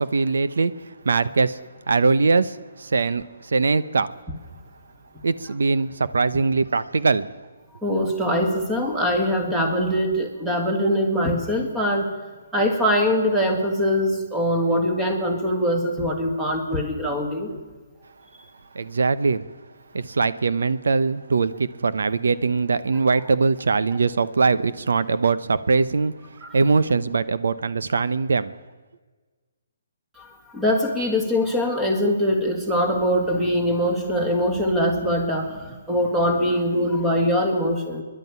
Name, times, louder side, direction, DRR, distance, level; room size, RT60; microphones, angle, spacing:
voice 1, 0.0-1.6 1.9-4.1 5.2-7.3 18.7-19.5 19.9-28.5, right 4 dB, 90° right, 14 dB, 0.9 m, -22 dB
voice 2, 7.8-12.1 12.5-17.5 26.4-26.5 30.2-38.0, equal, 5° right, 2 dB, 1.9 m, -22 dB
25.0 x 11.5 x 9.6 m, 1.4 s
hypercardioid pair, 175°, 0 cm